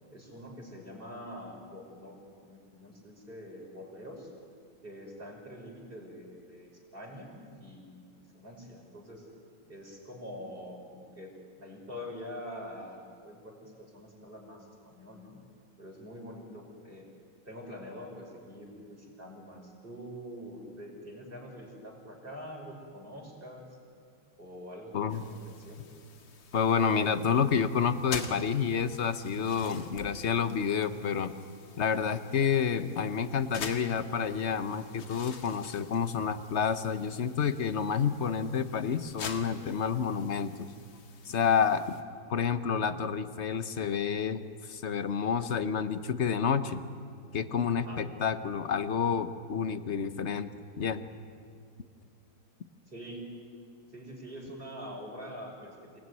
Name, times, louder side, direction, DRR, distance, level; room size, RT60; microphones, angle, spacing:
voice 1, 0.1-4.3 4.8-8.0 8.3-9.3 9.7-11.3 11.6-15.4 15.8-17.1 17.5-23.7 24.4-25.9 47.8-48.0 52.9-53.3 53.9-56.0, equal, 25° right, -1 dB, 5.7 m, -45 dB
sound 1, 25.1-42.0, left 5 dB, 75° left, 2.4 m, -47 dB
voice 2, 26.5-31.3 31.8-40.7 41.3-41.8 42.3-46.8 47.3-50.5 50.8-51.0, left 6 dB, 45° left, 11 dB, 1.0 m, -29 dB
27.5 x 19.5 x 9.6 m, 2.3 s
omnidirectional pair, 2.1 m